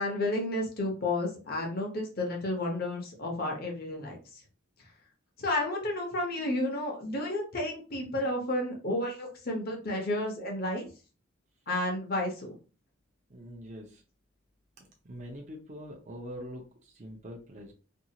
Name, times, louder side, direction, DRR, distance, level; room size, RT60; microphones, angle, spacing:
voice 1, 0.0-4.2 5.4-10.9 11.7-12.6, left 1 dB, 45° left, 1 dB, 0.8 m, -31 dB
voice 2, 13.3-14.0 14.8-17.7, equal, 35° right, -1 dB, 0.6 m, -44 dB
2.6 x 2.4 x 2.8 m, 0.35 s
head